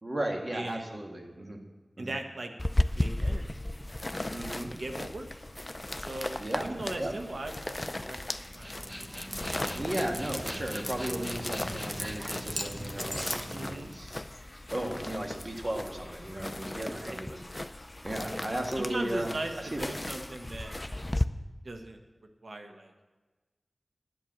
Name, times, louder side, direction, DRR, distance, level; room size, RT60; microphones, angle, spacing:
voice 1, 0.0-1.6 2.0-2.2 4.3-4.7 6.4-7.1 9.7-14.2 14.7-17.4 18.0-19.9, right 1 dB, 50° right, 1 dB, 1.9 m, -35 dB
voice 2, 0.5-1.0 2.0-2.7 2.9-3.6 4.0-5.3 6.0-9.1 13.5-13.9 16.9-17.2 18.2-18.4 18.8-21.1 21.6-22.0 22.4-23.0, right 2 dB, 75° right, 4 dB, 1.2 m, -40 dB
sound 1, 2.6-21.3, left 1 dB, 30° left, 0.5 m, -36 dB
Dog, 8.4-14.2, equal, 5° right, 1.2 m, -38 dB
10.5 x 8.0 x 7.3 m, 1.2 s
cardioid pair, 40°, 0 cm